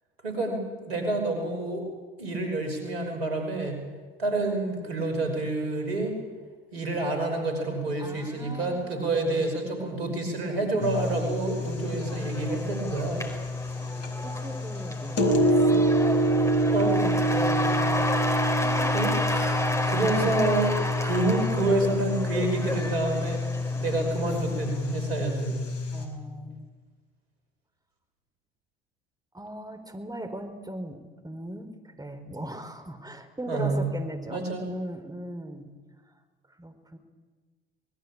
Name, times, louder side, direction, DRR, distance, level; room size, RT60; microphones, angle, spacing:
voice 1, 0.2-1.9 2.2-3.8 4.2-6.2 6.7-13.2 16.7-17.2 18.9-19.2 19.9-23.4 23.8-25.6 33.5-33.9 34.3-34.7, right 2 dB, 85° right, 5 dB, 5.4 m, -28 dB
voice 2, 8.0-9.1 13.9-15.8 17.3-18.1 18.5-19.8 25.9-26.7 29.3-35.7 36.6-37.0, right 1 dB, 15° right, 6 dB, 4.3 m, -39 dB
sound 1, 10.8-26.1, equal, 55° left, 5.6 m, -27 dB
Cheering / Applause / Crowd, 11.5-24.9, left 1 dB, 10° left, 4.5 m, -32 dB
25.5 x 20.5 x 8.7 m, 1.4 s
hypercardioid pair, 60°, 30 cm